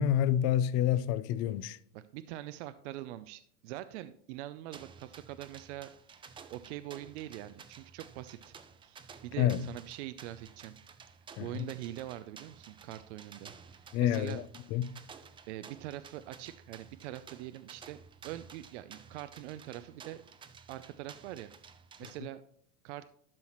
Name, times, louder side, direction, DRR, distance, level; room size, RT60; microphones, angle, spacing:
voice 1, 0.0-1.8 9.4-9.6 11.4-11.7 13.9-14.4 14.7-14.9, left 10 dB, 45° left, 0.5 m, -28 dB
voice 2, 1.9-5.9 6.5-8.5 8.8-10.8 11.4-14.4 15.5-18.0 18.2-20.2 20.7-21.5 22.0-22.4 22.8-23.1, right 14 dB, 70° right, 0.6 m, -43 dB
sound 1, 4.7-22.2, right 6 dB, 15° right, 0.5 m, -53 dB
12.0 x 5.6 x 3.0 m
supercardioid pair, 125°, 36 cm